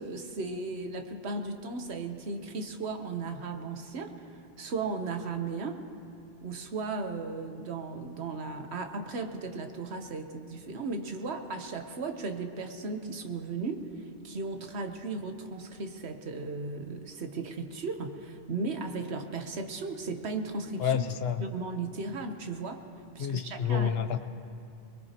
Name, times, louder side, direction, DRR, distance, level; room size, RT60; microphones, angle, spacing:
voice 1, 0.0-5.8 6.4-21.0 21.4-22.8 23.1-24.0, right 3 dB, 80° right, 6 dB, 1.3 m, -36 dB
voice 2, 20.8-21.4 23.2-24.2, left 8 dB, 70° left, 10 dB, 0.9 m, -29 dB
21.5 x 21.5 x 2.9 m, 2.6 s
omnidirectional pair, 1.1 m